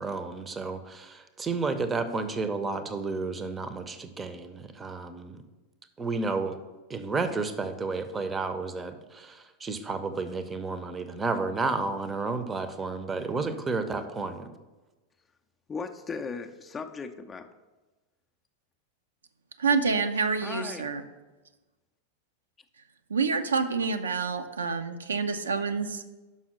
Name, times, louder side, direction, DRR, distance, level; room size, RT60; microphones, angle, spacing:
voice 1, 0.0-5.4 6.0-6.6 6.9-14.5, right 3 dB, 15° right, 10 dB, 0.7 m, -31 dB
voice 2, 15.7-17.5 20.4-20.9, left 5 dB, 20° left, 6 dB, 0.5 m, -37 dB
voice 3, 19.6-21.0 23.1-26.2, right 5 dB, 70° right, 7 dB, 0.5 m, -27 dB
5.7 x 5.5 x 6.2 m, 1.2 s
figure-of-eight pair, 90°, 0 cm